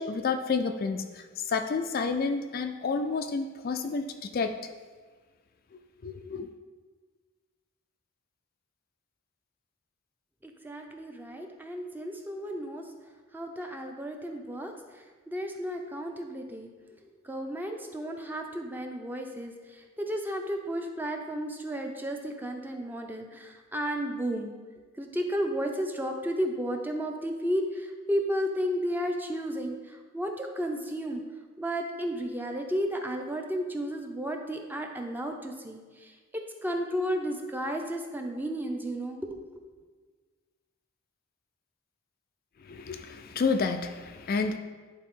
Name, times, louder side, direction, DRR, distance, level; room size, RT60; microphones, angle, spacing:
voice 1, 0.0-4.6 6.0-6.5 42.6-44.6, left 4 dB, 45° left, 7 dB, 0.3 m, -30 dB
voice 2, 10.4-12.9 13.3-16.7 17.2-24.5 25.0-31.2 31.6-39.6, equal, 10° right, 3 dB, 0.5 m, -33 dB
10.0 x 4.0 x 3.7 m, 1.4 s
head